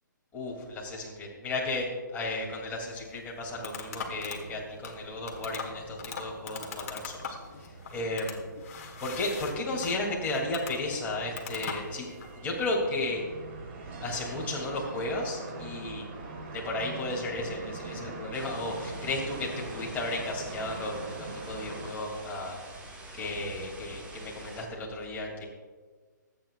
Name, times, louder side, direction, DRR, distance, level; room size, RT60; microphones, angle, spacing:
voice 1, 0.3-7.4 7.9-8.4 9.0-12.1 12.4-13.2 14.0-16.1 16.5-22.6 23.1-25.4, left 2 dB, 15° left, -3 dB, 2.7 m, -34 dB
sound 1, 2.9-12.4, left 5 dB, 45° left, 1.5 m, -42 dB
sound 2, 3.4-21.9, right 3 dB, 35° right, 1.7 m, -44 dB
sound 3, 18.3-24.7, right 2 dB, 10° right, 1.4 m, -46 dB
24.0 x 8.9 x 2.5 m, 1.5 s
hypercardioid pair, 145°, 10 cm